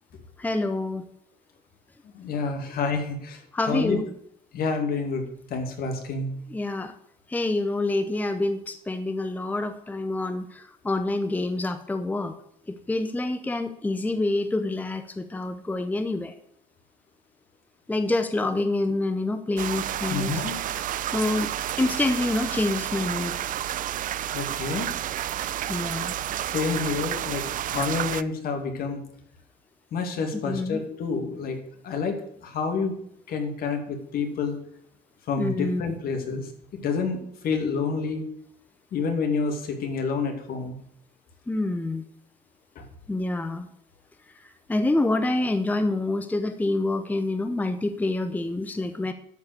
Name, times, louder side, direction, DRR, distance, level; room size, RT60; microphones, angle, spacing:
voice 1, 0.4-1.0 3.5-4.1 6.5-6.9 7.3-12.4 12.7-16.3 17.9-20.3 21.1-23.4 25.7-26.2 30.4-30.8 35.4-35.8 41.5-42.0 43.1-43.7 44.7-49.1, left 2 dB, 10° left, 9 dB, 0.7 m, -27 dB
voice 2, 2.1-4.0 4.5-5.2 5.5-6.3 20.1-20.5 24.3-24.9 26.5-27.4 27.7-29.0 29.9-31.6 31.8-32.9 33.3-34.6 35.3-38.2 38.9-40.8 42.8-42.9, left 4 dB, 65° left, 5 dB, 2.2 m, -28 dB
sound 1, 19.6-28.2, right 12 dB, 55° right, 0.5 m, -30 dB
12.0 x 4.8 x 7.9 m, 0.71 s
cardioid pair, 110°, 17 cm